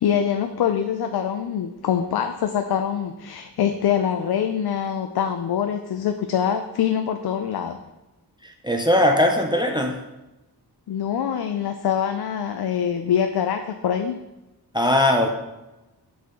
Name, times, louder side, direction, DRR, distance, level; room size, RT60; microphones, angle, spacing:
voice 1, 0.0-7.8 10.9-14.2, left 8 dB, 70° left, 7 dB, 0.5 m, -24 dB
voice 2, 8.6-10.0 14.7-15.3, left 1 dB, 10° right, 2 dB, 0.5 m, -19 dB
8.3 x 4.3 x 3.7 m, 1.0 s
wide cardioid pair, 135°, 40 cm